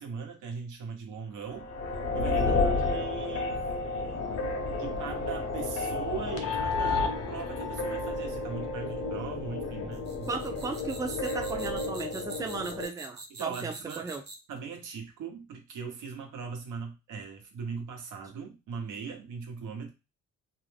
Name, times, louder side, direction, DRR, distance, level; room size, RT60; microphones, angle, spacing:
voice 1, 0.0-1.7 2.1-3.7 4.8-10.3 13.3-14.1 14.5-19.9, right 6 dB, 80° right, 3 dB, 1.0 m, -40 dB
sound 1, 1.5-12.9, left 3 dB, 55° left, 0.8 m, -31 dB
voice 2, 2.5-2.8 10.3-14.2, right 4 dB, 10° right, 5 dB, 0.5 m, -36 dB
sound 2, 9.9-14.6, right 2 dB, 35° right, 0.8 m, -46 dB
2.6 x 2.0 x 3.2 m, 0.26 s
cardioid pair, 90°, 30 cm